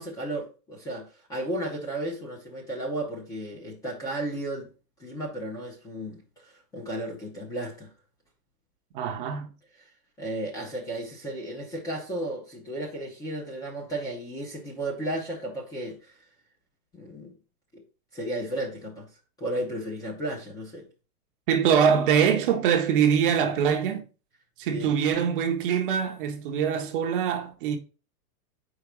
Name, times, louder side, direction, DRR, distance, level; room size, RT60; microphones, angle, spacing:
voice 1, 0.0-4.7 5.0-7.9 10.2-16.2 16.9-17.3 18.1-19.1 19.4-20.9 24.7-24.9, right 1 dB, 10° left, 0.6 m, -34 dB
voice 2, 8.9-9.5 21.5-24.0 24.6-27.8, right 7 dB, 35° right, 0.7 m, -23 dB
4.8 x 3.9 x 5.1 m
hypercardioid pair, 155°, 46 cm